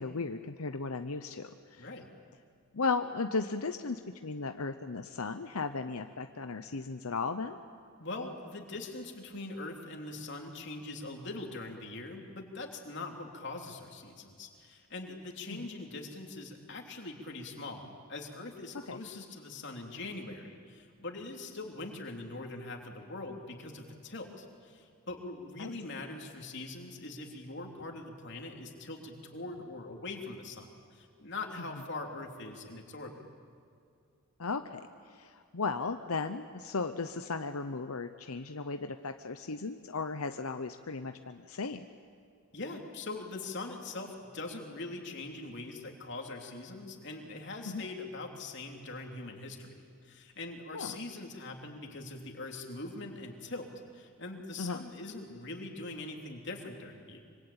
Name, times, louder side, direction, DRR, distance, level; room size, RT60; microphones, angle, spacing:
voice 1, 0.0-1.9 2.7-7.6 18.9-19.0 25.6-25.7 31.7-31.8 34.4-34.8 35.1-41.9 47.6-47.8 50.7-51.0 54.6-54.8, left 4 dB, 90° left, 8 dB, 0.9 m, -36 dB
voice 2, 1.8-2.1 8.0-33.2 42.5-57.2, left 2 dB, 55° left, 2 dB, 3.3 m, -42 dB
25.5 x 25.0 x 8.9 m, 2.3 s
head